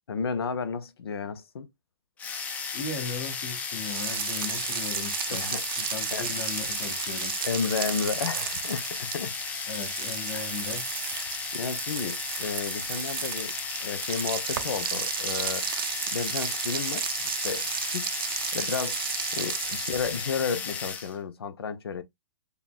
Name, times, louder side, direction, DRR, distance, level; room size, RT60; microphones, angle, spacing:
voice 1, 0.1-1.7 5.3-5.6 6.1-6.3 7.4-9.3 10.3-10.4 11.1-13.5 13.8-19.0 19.3-22.0, left 6 dB, 90° left, 0.8 m, -33 dB
sound 1, 2.2-21.2, left 5 dB, 10° left, 0.5 m, -35 dB
voice 2, 2.7-5.5 5.8-7.3 9.7-10.9, left 4 dB, 55° left, 2.1 m, -37 dB
sound 2, 3.7-20.5, right 10 dB, 70° right, 0.5 m, -34 dB
6.9 x 2.4 x 2.3 m
hypercardioid pair, 155°, 13 cm